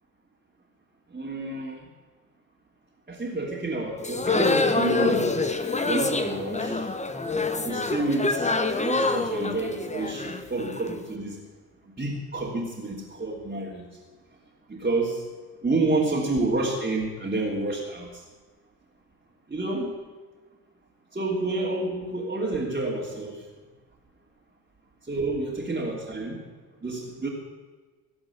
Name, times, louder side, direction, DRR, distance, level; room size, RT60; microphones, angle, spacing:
voice 1, 1.1-1.8 3.1-5.3 5.8-6.8 7.6-8.5 8.8-11.4 12.0-13.8 14.7-15.2 15.6-18.2 19.5-19.9 21.1-23.4 25.1-26.4 26.8-27.3, right 2 dB, 20° right, -5 dB, 2.9 m, -29 dB
sound 1, 4.0-11.0, left 3 dB, 15° left, 1.3 m, -26 dB
18.0 x 7.9 x 8.4 m, 1.4 s
figure-of-eight pair, 50°, 46 cm